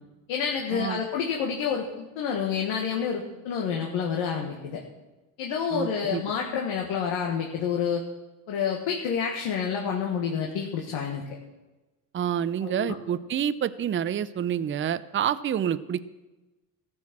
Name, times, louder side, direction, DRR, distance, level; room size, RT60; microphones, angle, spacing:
voice 1, 0.3-4.8 5.4-8.0 8.5-11.2 12.6-12.9, left 7 dB, 75° left, 0 dB, 1.6 m, -28 dB
voice 2, 5.7-6.2 12.1-16.0, right 9 dB, 25° right, 15 dB, 0.5 m, -28 dB
14.0 x 6.3 x 7.4 m, 1.1 s
supercardioid pair, 70°, 47 cm